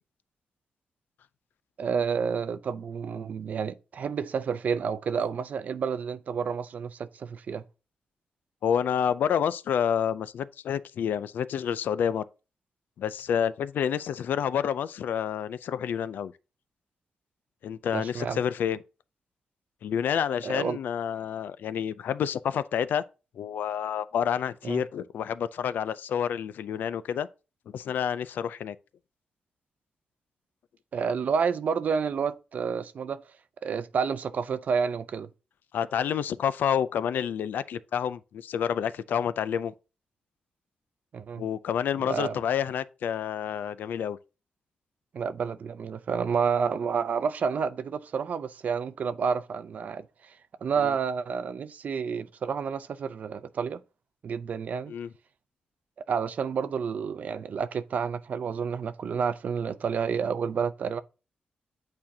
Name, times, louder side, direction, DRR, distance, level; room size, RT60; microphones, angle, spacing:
voice 1, 1.8-7.6 17.9-18.4 20.4-20.8 24.6-24.8 30.9-33.2 33.6-35.3 41.1-41.4 42.0-42.4 45.1-50.3 50.6-53.8 54.2-54.9 56.1-61.0, right 6 dB, 60° right, 0.5 m, -30 dB
voice 2, 8.6-12.2 13.0-16.3 17.6-18.8 19.8-23.0 23.4-27.3 27.7-28.8 35.7-39.7 41.4-44.2 50.8-50.9 54.9-55.1, left 8 dB, 85° left, 0.4 m, -29 dB
8.6 x 4.3 x 2.7 m
wide cardioid pair, 135°, 3 cm